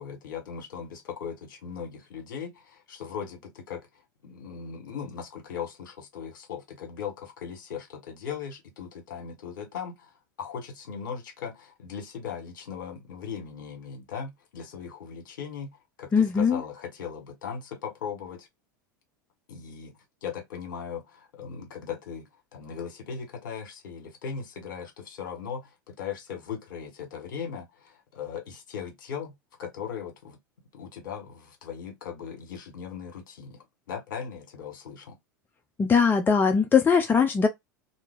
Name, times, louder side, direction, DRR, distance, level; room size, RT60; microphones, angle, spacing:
voice 1, 0.0-3.9 4.2-10.1 10.4-18.5 19.5-19.9 20.2-29.3 29.6-30.4 30.7-35.2, left 7 dB, 70° left, 1.6 m, -38 dB
voice 2, 16.1-16.6 35.8-37.5, left 6 dB, 20° left, 0.6 m, -21 dB
2.9 x 2.8 x 3.6 m
hypercardioid pair, 85°, 11 cm